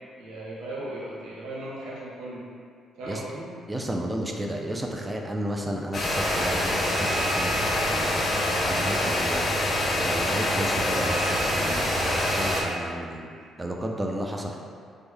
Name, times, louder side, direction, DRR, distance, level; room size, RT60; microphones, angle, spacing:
voice 1, 0.2-2.5 3.0-3.5 9.0-9.3, right 1 dB, 85° right, -6 dB, 0.7 m, -37 dB
voice 2, 3.7-8.1 8.7-9.5 10.0-13.2 13.6-14.6, right 1 dB, 15° right, 1 dB, 0.4 m, -32 dB
sound 1, 5.9-12.6, left 1 dB, 40° left, 0.6 m, -25 dB
3.4 x 2.1 x 3.2 m, 2.2 s
cardioid pair, 90°, 0 cm